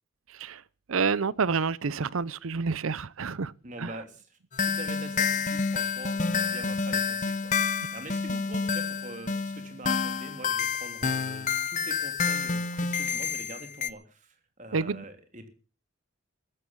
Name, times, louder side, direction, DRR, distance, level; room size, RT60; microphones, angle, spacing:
voice 1, 0.9-3.5 3.8-3.9 14.7-15.0, right 5 dB, 80° right, 0.6 m, -28 dB
voice 2, 3.6-15.5, right 1 dB, 35° right, 3.0 m, -44 dB
sound 1, 4.5-13.9, left 5 dB, 35° left, 0.9 m, -29 dB
14.5 x 12.0 x 7.2 m
head